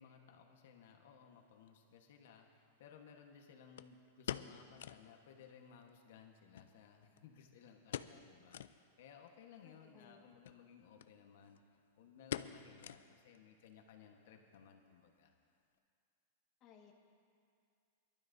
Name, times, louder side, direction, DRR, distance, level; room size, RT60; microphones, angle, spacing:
voice 1, 0.0-11.6 12.0-15.3, left 7 dB, 70° left, 3 dB, 1.2 m, -60 dB
sound 1, 1.7-1.8 3.8-5.1 5.4-5.5 5.8-5.9 6.5-7.4 7.9-8.2 8.5-8.8 9.3-9.4 10.3-10.6 11.0-11.1 11.4-11.8 12.3-13.4 13.7-13.8 14.3-14.7 15.0-15.1, left 10 dB, 85° left, 0.4 m, -45 dB
voice 2, 9.6-10.2 16.6-16.9, left 7 dB, 30° left, -1 dB, 1.4 m, -62 dB
23.5 x 12.5 x 2.7 m, 2.4 s
supercardioid pair, 165°, 0 cm